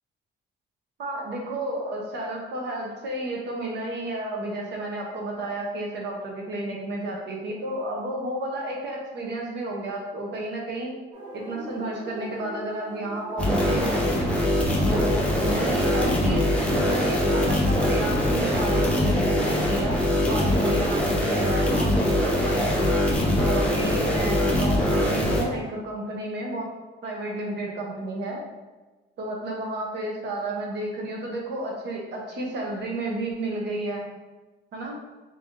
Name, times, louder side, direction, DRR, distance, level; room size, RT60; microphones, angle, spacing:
voice 1, 1.0-10.9 11.3-14.0 14.8-20.0 20.3-22.9 23.4-26.7 27.0-28.4 29.2-34.0 34.7-35.0, right 1 dB, 65° right, -1 dB, 0.9 m, -31 dB
sound 1, 11.1-18.8, right 1 dB, 20° right, 1.5 m, -40 dB
sound 2, 13.4-25.4, left 1 dB, 5° left, 0.6 m, -23 dB
3.4 x 2.7 x 3.5 m, 1.2 s
cardioid pair, 140°, 19 cm